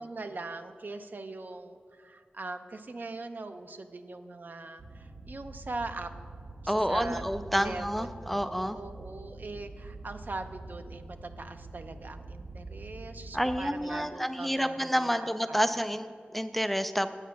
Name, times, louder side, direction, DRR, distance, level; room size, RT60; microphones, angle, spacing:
voice 1, 0.0-6.1 6.6-7.2 7.5-15.9, right 3 dB, 55° right, 8 dB, 0.6 m, -41 dB
sound 1, 4.8-13.7, right 2 dB, 75° right, 1.0 m, -45 dB
voice 2, 6.7-8.8 13.3-17.1, equal, 5° left, 10 dB, 0.3 m, -29 dB
8.3 x 8.1 x 5.7 m, 2.2 s
wide cardioid pair, 85°, 4 cm